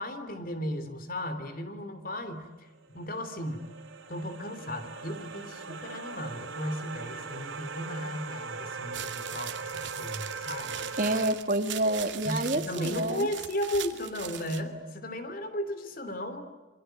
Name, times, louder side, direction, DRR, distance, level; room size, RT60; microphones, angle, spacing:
voice 1, 0.0-2.5 2.9-3.6 4.1-11.1 12.2-16.5, equal, 45° left, 10 dB, 3.1 m, -35 dB
sound 1, 2.8-11.3, right 4 dB, 85° right, 2.6 m, -40 dB
sound 2, 8.9-14.6, right 11 dB, 65° right, 2.3 m, -40 dB
voice 2, 11.0-13.3, right 1 dB, 45° right, 7 dB, 2.0 m, -28 dB
27.5 x 23.5 x 9.1 m, 1.2 s
head